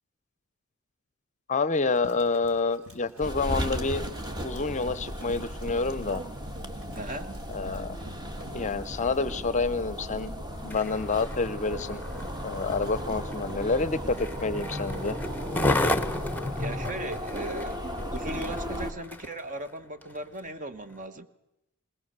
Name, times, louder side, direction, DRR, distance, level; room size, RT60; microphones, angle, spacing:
voice 1, 1.5-4.0 4.4-6.2 7.5-7.9 8.4-10.3 10.6-12.0 12.4-15.2, left 3 dB, 35° left, 16 dB, 0.7 m, -28 dB
Run, 1.7-8.6, right 1 dB, 80° right, 3.4 m, -49 dB
sound 1, 3.2-18.9, equal, 20° right, 1.5 m, -36 dB
voice 2, 6.9-7.3 16.5-17.8 18.1-21.3, right 1 dB, 40° right, 10 dB, 1.2 m, -37 dB
Skateboard, 10.6-19.4 20.0-20.1, left 1 dB, 10° left, 1.0 m, -33 dB
21.0 x 20.5 x 6.7 m, 0.91 s
head